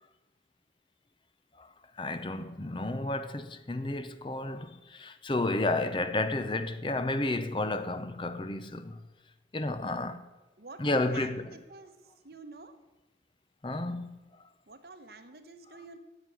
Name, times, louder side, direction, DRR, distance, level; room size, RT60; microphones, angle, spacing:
voice 1, 2.0-9.0 9.5-10.3 10.8-11.6 13.6-14.2, left 2 dB, 30° left, 0.6 m, -32 dB
voice 2, 10.6-11.9 12.2-12.7 14.7-16.0, right 3 dB, 65° right, 1.1 m, -48 dB
10.0 x 8.0 x 9.3 m
head